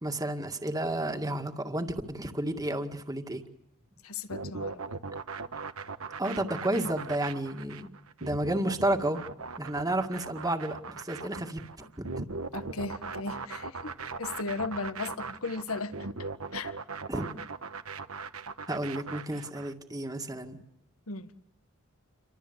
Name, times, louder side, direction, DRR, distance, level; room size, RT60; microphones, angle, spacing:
voice 1, 0.0-3.4 6.2-7.9 8.2-9.2 9.6-11.6 12.0-12.3 17.1-17.3 18.7-20.6, right 1 dB, 15° right, 2.0 m, -31 dB
voice 2, 4.0-5.0 11.4-11.5 12.5-13.9 14.2-16.8 21.1-21.3, left 3 dB, 80° left, 1.6 m, -37 dB
sound 1, 4.3-19.7, right 4 dB, 80° right, 1.3 m, -39 dB
29.0 x 24.0 x 8.1 m
head